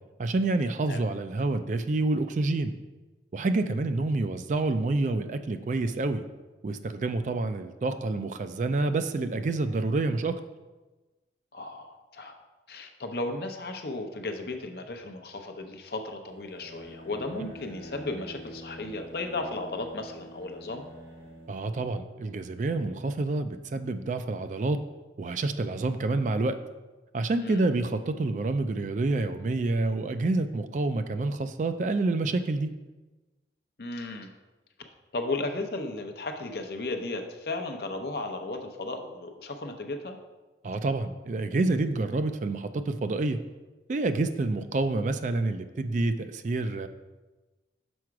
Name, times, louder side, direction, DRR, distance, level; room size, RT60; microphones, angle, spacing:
voice 1, 0.2-2.7 3.3-6.2 6.6-10.4 21.5-24.8 25.2-26.6 27.1-32.7 40.6-43.4 43.9-46.9, right 2 dB, 45° right, 10 dB, 0.3 m, -28 dB
voice 2, 11.5-12.3 12.7-20.8 27.4-27.7 33.8-34.3 35.1-40.2, left 2 dB, 60° left, 5 dB, 0.7 m, -35 dB
sound 1, 16.3-21.6, equal, 65° right, 1.8 m, -46 dB
6.2 x 4.8 x 4.6 m, 1.2 s
head